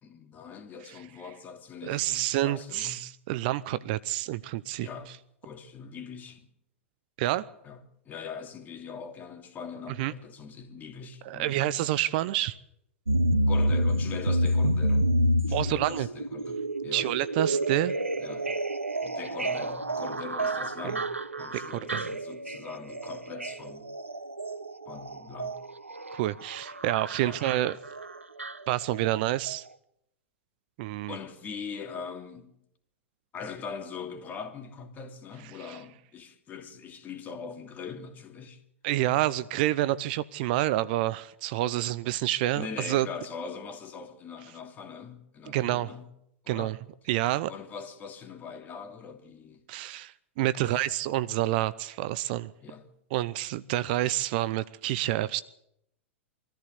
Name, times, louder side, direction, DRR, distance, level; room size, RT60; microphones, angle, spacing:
voice 1, 0.0-3.0 4.8-5.1 5.4-6.5 7.6-11.6 13.5-15.1 15.5-17.1 18.2-18.5 19.0-23.9 24.9-25.6 27.2-27.4 31.1-32.6 33.3-38.6 42.5-46.1 46.4-46.8 47.5-49.6 50.6-50.7 52.6-52.9, left 6 dB, 25° left, 2.9 m, -42 dB
voice 2, 1.9-4.9 7.2-7.4 10.0-10.1 11.2-12.6 15.5-16.1 16.9-17.9 20.8-20.9 21.6-22.1 26.1-27.8 28.7-29.7 30.8-31.1 35.7-35.8 38.8-43.1 45.5-45.9 46.5-46.8 47.1-47.5 49.7-52.5 53.1-55.4, right 15 dB, 45° right, 0.7 m, -28 dB
sound 1, 13.1-29.2 29.5-29.6, equal, 85° right, 0.9 m, -29 dB
24.0 x 14.0 x 8.2 m
figure-of-eight pair, 100°, 7 cm